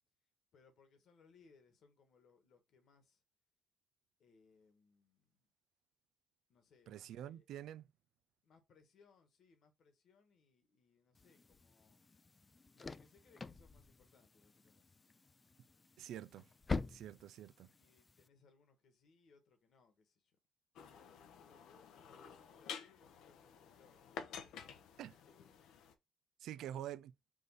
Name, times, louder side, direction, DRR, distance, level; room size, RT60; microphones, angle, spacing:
voice 1, 0.5-3.2 4.2-5.5 6.5-7.5 8.4-12.0 12.7-14.9 17.7-20.4 20.8-24.8 26.4-26.9, left 5 dB, 70° left, 1.3 m, -69 dB
voice 2, 6.9-7.9 16.0-16.5 16.9-17.7 25.0-25.2 26.4-27.1, right 11 dB, 80° right, 0.3 m, -47 dB
sound 1, 11.1-18.3, left 4 dB, 30° left, 0.3 m, -47 dB
sound 2, 20.8-25.9, left 7 dB, 85° left, 0.6 m, -51 dB
5.0 x 2.6 x 3.9 m
cardioid pair, 90°, 0 cm